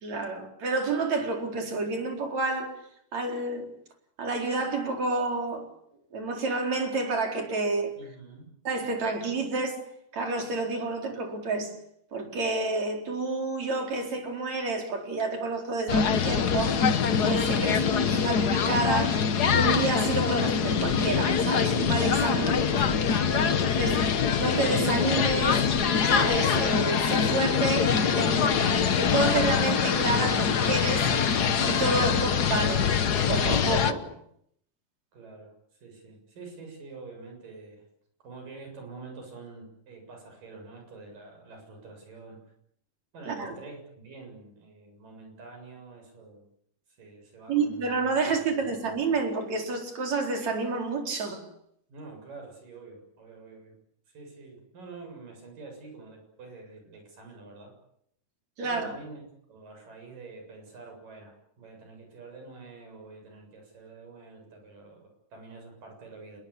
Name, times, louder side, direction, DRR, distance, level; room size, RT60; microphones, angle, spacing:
voice 1, 0.0-2.8 3.1-3.7 4.2-5.7 6.1-8.0 8.7-9.8 10.1-11.8 12.1-16.8 17.2-17.9 18.1-22.8 23.3-24.0 24.3-25.6 26.0-28.6 28.9-31.3 31.6-32.9 33.3-34.1 43.3-43.6 47.5-51.4 58.6-58.9, right 3 dB, 55° right, 5.5 m, -29 dB
voice 2, 8.0-8.5 17.6-18.1 22.8-23.0 28.5-28.8 32.1-32.2 35.1-35.5 35.8-37.8 38.2-42.4 43.1-46.4 46.9-47.9 48.4-48.7 51.9-53.8 54.1-57.7 58.6-59.2 59.5-66.4, right 3 dB, 85° right, 8.9 m, -46 dB
sound 1, 15.9-33.9, left 7 dB, 65° left, 0.9 m, -24 dB
27.5 x 21.5 x 8.6 m
omnidirectional pair, 3.8 m